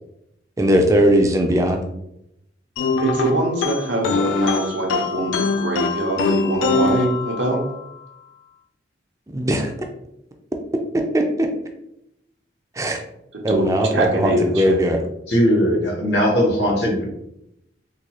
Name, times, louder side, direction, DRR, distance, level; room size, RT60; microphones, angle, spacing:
voice 1, 0.6-1.8 9.3-9.7 11.1-11.5 12.8-13.0 13.4-15.0, equal, 15° right, 3 dB, 0.3 m, -18 dB
sound 1, 2.8-7.8, left 4 dB, 90° left, 0.3 m, -23 dB
voice 2, 3.0-7.6 13.3-14.8, right 1 dB, 85° right, 1 dB, 0.8 m, -23 dB
voice 3, 15.3-17.0, equal, 70° left, -1 dB, 1.1 m, -19 dB
3.8 x 2.3 x 3.0 m, 0.81 s
head